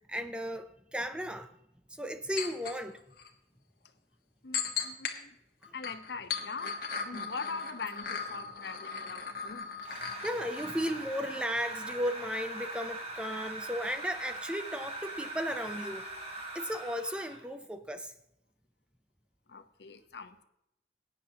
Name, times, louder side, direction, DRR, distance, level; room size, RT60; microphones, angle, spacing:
voice 1, 0.1-1.5 1.9-3.0 5.6-5.7 7.1-7.3 9.9-16.1 16.5-18.1, equal, 5° right, 0.5 m, -35 dB
sound 1, 2.4-2.7 3.2-3.3 4.5-5.1 5.6-11.6 11.9-12.0, left 6 dB, 55° left, 1.3 m, -38 dB
voice 2, 4.4-5.4 5.7-6.7 7.0-9.7 19.5-20.4, left 4 dB, 70° left, 0.8 m, -42 dB
sound 2, 9.8-17.5, right 2 dB, 35° right, 1.8 m, -41 dB
18.5 x 9.3 x 2.8 m
head